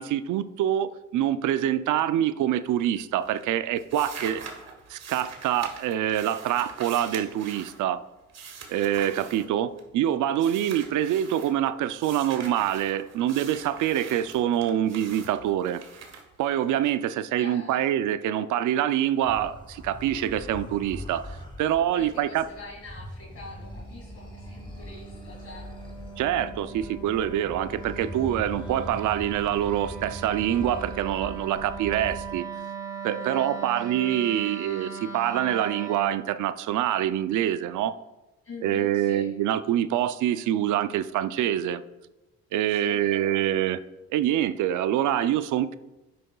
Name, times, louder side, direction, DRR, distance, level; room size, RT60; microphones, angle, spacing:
voice 1, 0.0-4.4 4.9-8.0 8.7-15.8 16.4-21.3 21.6-22.4 26.2-32.5 33.0-38.0 38.6-41.8 42.5-43.8 44.1-45.8, right 11 dB, 80° right, 14 dB, 0.5 m, -25 dB
sound 1, 2.5-3.0 3.2-10.0 10.3-11.5 12.0-16.9, right 5 dB, 60° right, 1.5 m, -44 dB
voice 2, 17.4-17.9 21.9-25.9 33.2-33.9 38.4-39.3 42.7-43.6, left 3 dB, 50° left, -2 dB, 2.1 m, -44 dB
sound 2, 19.2-32.4, left 1 dB, 15° left, 2.9 m, -41 dB
Wind instrument woodwind instrument, 23.3-36.2, right 6 dB, 10° right, 2.4 m, -40 dB
10.0 x 7.7 x 2.3 m, 1.0 s
cardioid pair, 90°, 30 cm